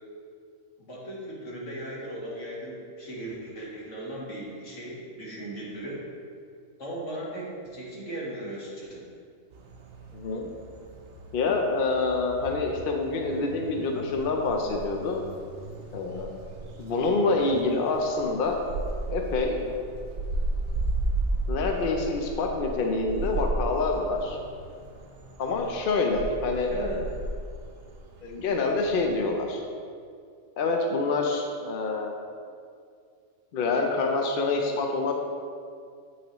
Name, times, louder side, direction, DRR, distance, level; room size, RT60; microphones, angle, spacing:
voice 1, 0.8-6.1 6.8-9.0 26.6-27.0, right 1 dB, 70° left, -5 dB, 1.9 m, -37 dB
sound 1, 9.5-29.3, right 2 dB, 55° right, 0.8 m, -35 dB
voice 2, 10.1-10.5 11.3-15.2 15.9-16.3 16.8-18.6 19.1-19.7 21.5-24.4 25.4-26.9 28.2-29.6 30.6-32.1 33.5-35.1, left 3 dB, 55° left, 2 dB, 0.7 m, -26 dB
8.2 x 5.7 x 3.0 m, 2.2 s
omnidirectional pair, 1.4 m